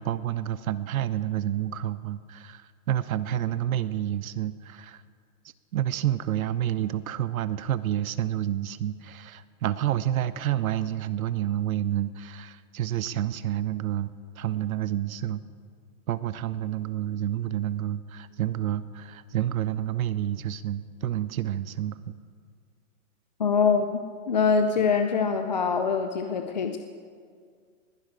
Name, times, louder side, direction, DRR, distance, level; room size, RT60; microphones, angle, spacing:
voice 1, 0.0-5.0 5.7-15.4 16.1-22.1, right 12 dB, 80° right, 15 dB, 0.7 m, -29 dB
voice 2, 23.4-26.8, left 5 dB, 35° left, 7 dB, 0.4 m, -24 dB
20.5 x 11.5 x 5.0 m, 2.1 s
hypercardioid pair, 175°, 42 cm